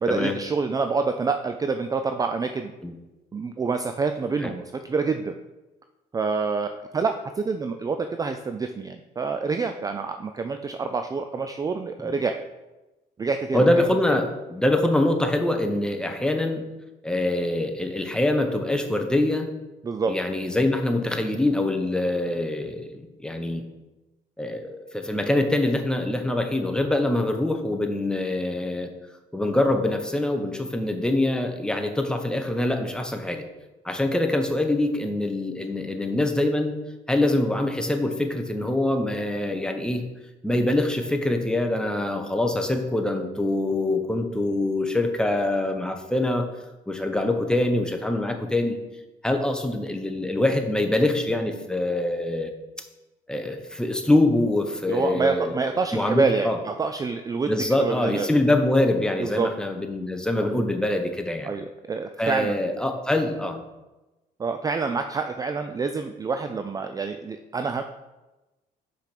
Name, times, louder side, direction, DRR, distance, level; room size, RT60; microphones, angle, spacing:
voice 1, 0.0-2.7 3.3-5.3 6.1-12.4 13.2-13.8 19.8-20.1 54.9-57.5 57.8-58.3 59.2-59.5 60.4-60.5 61.5-62.6 64.4-67.8, right 4 dB, 20° right, 7 dB, 0.4 m, -27 dB
voice 2, 13.5-16.6 17.0-19.5 20.1-23.6 24.4-28.9 29.3-33.4 33.8-36.7 37.1-40.0 40.4-46.5 46.9-48.8 49.2-52.5 53.3-55.6 55.9-56.6 57.5-61.5 62.2-63.6, left 1 dB, 5° left, 5 dB, 0.9 m, -24 dB
5.8 x 5.0 x 5.9 m, 1.1 s
cardioid pair, 110°, 17 cm